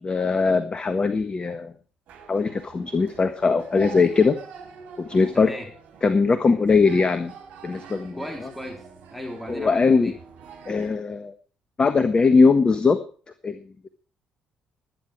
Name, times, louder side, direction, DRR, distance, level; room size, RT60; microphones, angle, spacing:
voice 1, 0.0-1.7 2.3-4.4 5.0-5.5 6.0-7.3 7.6-8.2 9.5-10.1 10.7-11.3 11.8-13.0 13.4-13.6, left 4 dB, 30° left, 11 dB, 1.5 m, -20 dB
sound 1, 2.1-10.9, right 6 dB, 55° right, 4.6 m, -45 dB
voice 2, 5.3-5.7 8.1-10.2, left 1 dB, ahead, 4 dB, 3.5 m, -36 dB
20.5 x 9.9 x 4.7 m, 0.41 s
figure-of-eight pair, 45°, 3 cm